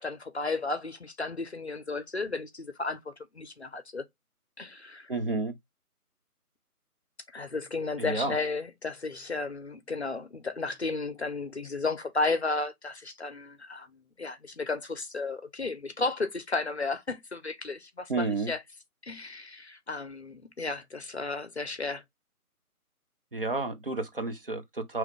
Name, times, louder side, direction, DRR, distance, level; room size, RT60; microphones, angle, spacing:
voice 1, 0.0-4.0 4.6-5.1 7.3-18.6 19.0-22.0, left 3 dB, 45° left, 0.7 m, -33 dB
voice 2, 5.1-5.6 8.0-8.4 18.1-18.5 23.3-25.0, right 3 dB, 40° right, 0.8 m, -31 dB
4.9 x 3.2 x 3.1 m
figure-of-eight pair, 160°, 45 cm